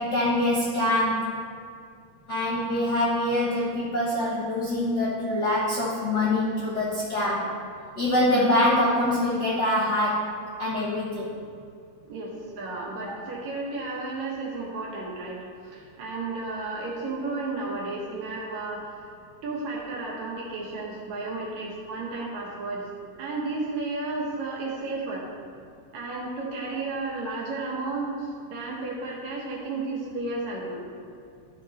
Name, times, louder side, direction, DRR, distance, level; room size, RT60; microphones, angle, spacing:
voice 1, 0.0-1.3 2.3-7.5 7.9-10.3 10.6-11.3 13.0-13.2, left 1 dB, 50° left, -7 dB, 1.2 m, -24 dB
voice 2, 12.1-19.1 19.4-22.9 23.2-25.3 25.9-30.9, right 3 dB, 65° right, -3 dB, 2.3 m, -33 dB
13.0 x 4.4 x 4.1 m, 2.3 s
omnidirectional pair, 3.8 m